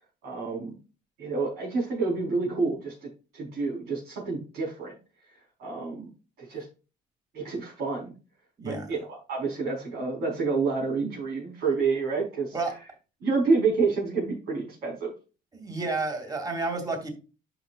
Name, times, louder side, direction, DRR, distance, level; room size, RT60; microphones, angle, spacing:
voice 1, 0.2-0.8 1.2-5.0 5.6-6.1 6.4-6.6 7.3-8.1 8.6-12.6 13.2-15.1, right 4 dB, 75° right, -3 dB, 4.5 m, -28 dB
voice 2, 15.5-17.1, right 3 dB, 20° right, 4 dB, 2.6 m, -30 dB
10.5 x 6.1 x 2.5 m, 0.33 s
cardioid pair, 110°, 17 cm